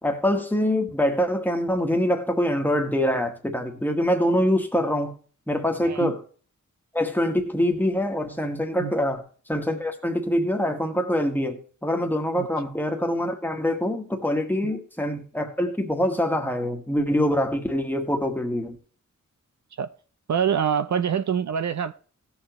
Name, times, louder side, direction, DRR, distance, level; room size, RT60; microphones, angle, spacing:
voice 1, 0.0-5.1 5.5-6.2 6.9-18.8, equal, 5° left, 1.5 m, -24 dB
voice 2, 5.8-6.1 8.8-8.9 12.4-12.5 14.6-14.8 19.8-19.9 20.3-21.9, right 8 dB, 65° right, 0.6 m, -25 dB
17.5 x 7.1 x 3.0 m
wide cardioid pair, 170°, 31 cm